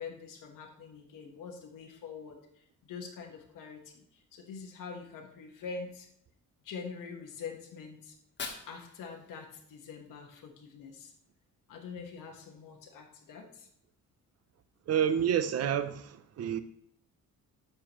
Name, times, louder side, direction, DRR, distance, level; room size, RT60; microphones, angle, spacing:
voice 1, 0.0-6.1 6.6-8.2 8.7-11.1 11.7-13.7, left 5 dB, 80° left, 1.5 m, -45 dB
Fire, 8.1-10.1, left 4 dB, 35° left, 1.3 m, -45 dB
voice 2, 14.9-16.6, right 9 dB, 50° right, 0.7 m, -29 dB
11.5 x 6.9 x 3.0 m
cardioid pair, 160°, 32 cm